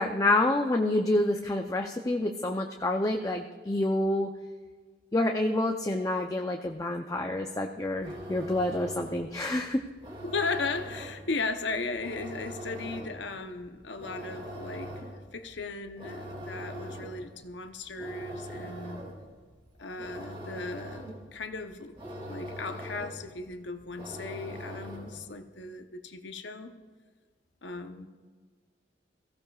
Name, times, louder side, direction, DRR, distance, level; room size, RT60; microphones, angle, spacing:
voice 1, 0.0-4.3 5.1-9.8, left 1 dB, 20° left, 0.6 m, -28 dB
sound 1, 7.9-25.3, equal, 30° right, 2.4 m, -42 dB
voice 2, 10.2-19.0 19.8-21.0 21.3-21.9 22.3-26.7 27.6-28.1, left 3 dB, 75° left, 0.8 m, -36 dB
22.0 x 15.5 x 2.4 m
head